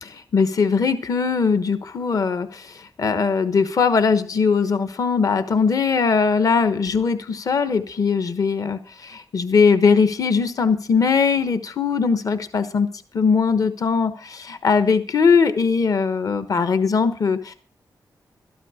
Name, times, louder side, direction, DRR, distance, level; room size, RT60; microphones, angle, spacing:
voice 1, 0.0-12.9 13.1-17.5, left 5 dB, 50° left, 11 dB, 1.2 m, -20 dB
13.0 x 12.0 x 4.9 m, 0.42 s
wide cardioid pair, 155°, 7 cm